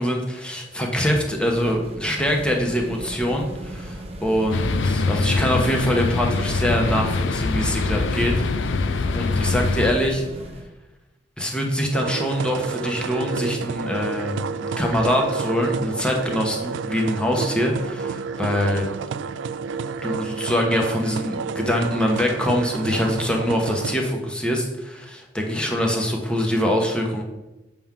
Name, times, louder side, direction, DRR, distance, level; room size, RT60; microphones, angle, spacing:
voice 1, 0.0-8.3 9.1-10.2 11.4-18.9 20.0-27.2, equal, 5° left, 0 dB, 1.0 m, -24 dB
sound 1, 1.3-10.7, right 1 dB, 35° right, 0.9 m, -37 dB
sound 2, 4.5-9.9, left 3 dB, 70° left, 0.5 m, -23 dB
sound 3, 11.9-23.9, right 5 dB, 70° right, 0.3 m, -30 dB
7.3 x 3.7 x 5.9 m, 1.0 s
head